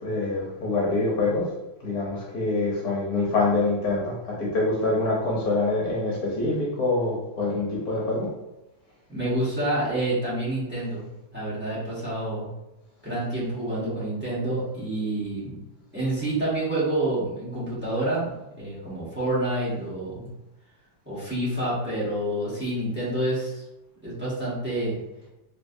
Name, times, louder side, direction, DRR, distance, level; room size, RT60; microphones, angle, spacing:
voice 1, 0.0-1.5 1.8-8.3, left 2 dB, 60° left, -4 dB, 1.2 m, -25 dB
voice 2, 9.1-11.1 11.3-12.5 13.0-15.6 15.9-20.3 21.1-23.6 24.0-25.0, right 1 dB, 5° right, -9 dB, 1.0 m, -28 dB
3.1 x 3.1 x 2.6 m, 0.94 s
omnidirectional pair, 2.1 m